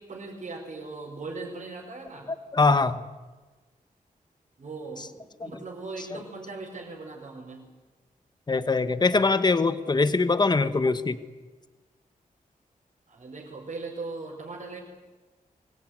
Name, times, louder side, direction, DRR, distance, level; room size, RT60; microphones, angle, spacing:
voice 1, 0.0-2.3 4.6-7.7 13.1-14.8, right 3 dB, 55° right, -3 dB, 5.2 m, -39 dB
voice 2, 2.5-3.0 8.5-11.2, left 3 dB, 30° left, 12 dB, 1.2 m, -22 dB
24.0 x 21.0 x 9.4 m, 1.3 s
wide cardioid pair, 135°, 15 cm